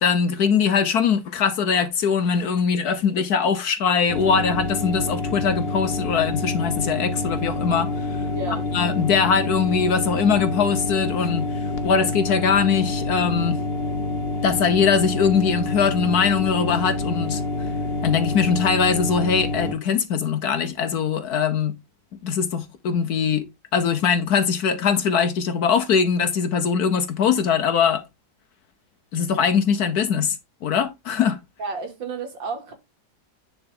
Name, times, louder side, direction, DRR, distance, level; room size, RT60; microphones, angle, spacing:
voice 1, 0.0-8.2 8.7-13.6 14.4-17.4 18.0-21.8 22.2-28.0 29.1-30.4 30.6-31.4, left 6 dB, 65° left, 1.2 m, -21 dB
sound 1, 4.1-19.7, left 3 dB, 40° left, 1.0 m, -27 dB
voice 2, 8.3-8.7 31.6-32.7, right 4 dB, 70° right, 3.1 m, -31 dB
10.0 x 4.8 x 3.7 m
omnidirectional pair, 2.1 m